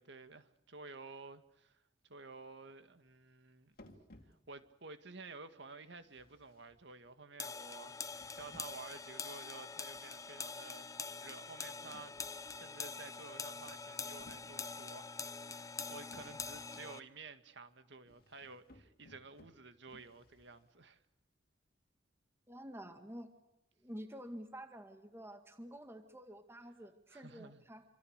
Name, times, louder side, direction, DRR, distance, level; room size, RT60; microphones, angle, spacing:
voice 1, 0.0-3.9 4.2-21.0 27.1-27.6, right 3 dB, 65° right, 2.0 m, -53 dB
wood drawer slide open close pull push, 3.7-4.8 6.0-7.2 7.9-9.0 9.9-10.4 11.9-12.8 13.4-14.9 16.1-16.9 18.0-20.8, left 1 dB, 55° left, 2.9 m, -63 dB
sound 1, 7.4-17.0, left 4 dB, 20° left, 0.9 m, -45 dB
voice 2, 22.5-23.3 23.8-27.8, equal, 15° right, 2.1 m, -49 dB
28.0 x 26.5 x 6.7 m
head